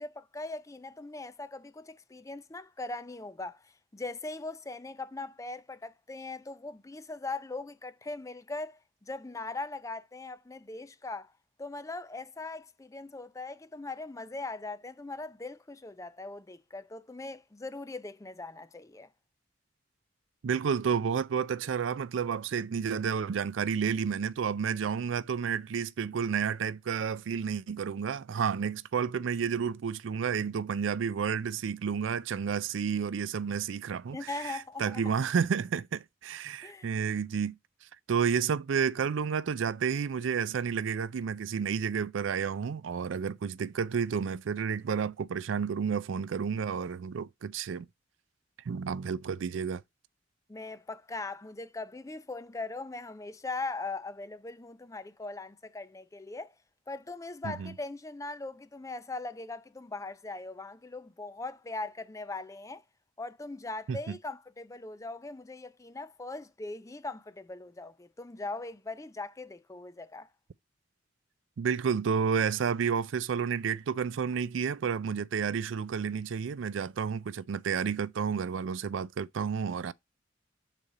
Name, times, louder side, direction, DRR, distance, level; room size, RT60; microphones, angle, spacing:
voice 1, 0.0-11.3 11.6-19.1 34.1-35.0 36.6-36.9 50.5-56.5 56.9-62.8 63.2-70.3, left 3 dB, 15° left, 0.5 m, -40 dB
voice 2, 20.4-37.5 38.1-47.9 48.7-49.8 57.4-57.7 63.9-64.2 71.6-79.9, right 6 dB, 80° right, 0.4 m, -31 dB
6.6 x 4.2 x 4.9 m
head